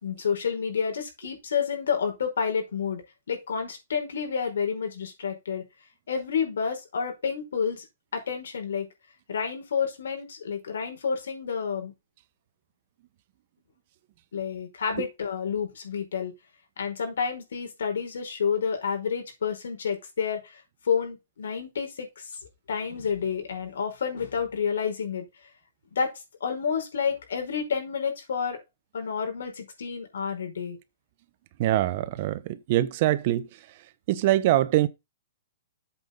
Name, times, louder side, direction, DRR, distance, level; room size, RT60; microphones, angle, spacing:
voice 1, 0.0-3.0 3.3-5.6 6.1-7.8 8.1-8.9 9.3-11.9 14.3-16.3 16.8-22.3 22.7-25.2 25.9-26.1 26.4-28.6 28.9-30.8, left 6 dB, 80° left, 5.0 m, -29 dB
voice 2, 31.6-33.5 34.1-34.9, right 14 dB, 45° right, 0.8 m, -23 dB
8.1 x 5.6 x 5.2 m
hypercardioid pair, 155°, 0 cm